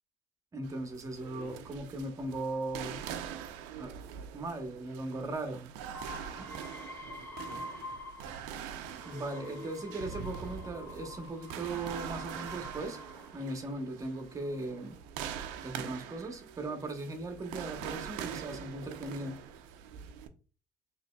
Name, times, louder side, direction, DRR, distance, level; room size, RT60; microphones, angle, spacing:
voice 1, 0.5-3.0 3.8-5.7 6.4-6.7 9.0-13.0 13.3-15.0 15.6-19.4, right 2 dB, 30° right, 1.0 m, -38 dB
sound 1, 0.6-20.3, right 8 dB, 85° right, 0.5 m, -44 dB
voice 2, 1.2-1.6 7.0-8.0 8.9-10.1, left 2 dB, 80° left, 1.6 m, -51 dB
sound 2, 5.9-8.5 8.8-13.4 14.1-14.7, left 2 dB, 20° left, 1.0 m, -47 dB
3.9 x 3.1 x 2.2 m
supercardioid pair, 80°, 11 cm